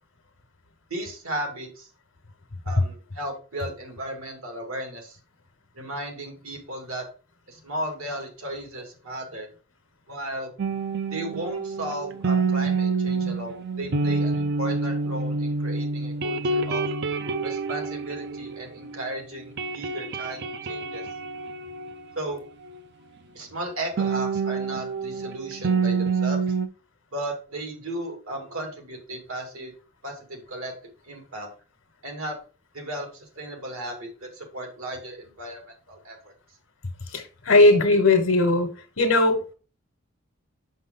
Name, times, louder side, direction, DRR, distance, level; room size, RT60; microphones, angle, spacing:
voice 1, 0.9-1.9 2.6-5.2 5.8-7.0 7.5-9.5 10.1-10.5 11.1-16.8 17.4-21.1 22.2-22.4 23.3-26.4 27.1-29.7 30.0-30.7 31.0-31.5 32.0-32.4 32.7-36.3, right 1 dB, 80° right, 3 dB, 2.4 m, -35 dB
sound 1, 10.6-19.1 19.3-22.8 24.0-26.7, right 4 dB, 50° right, 0.5 m, -27 dB
voice 2, 37.1-38.7 39.0-39.5, left 2 dB, 65° left, 3 dB, 1.2 m, -19 dB
6.4 x 5.4 x 3.8 m, 0.36 s
head